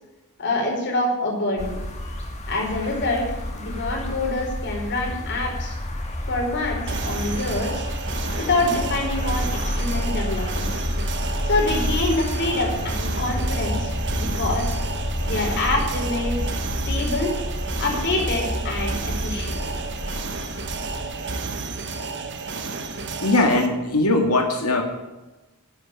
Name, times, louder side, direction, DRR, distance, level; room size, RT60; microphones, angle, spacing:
voice 1, 0.4-1.8 2.5-5.7 6.3-7.9 8.4-10.9 11.4-14.8 15.2-16.5 16.9-17.3 17.8-19.6, left 2 dB, 55° left, 0 dB, 4.7 m, -26 dB
sound 1, 1.6-21.0, left 1 dB, 30° left, 2.3 m, -29 dB
sound 2, 6.9-23.7, right 4 dB, 55° right, 1.4 m, -32 dB
voice 2, 23.2-24.8, left 2 dB, 85° left, 3 dB, 2.0 m, -20 dB
11.5 x 8.7 x 9.5 m, 1.1 s
head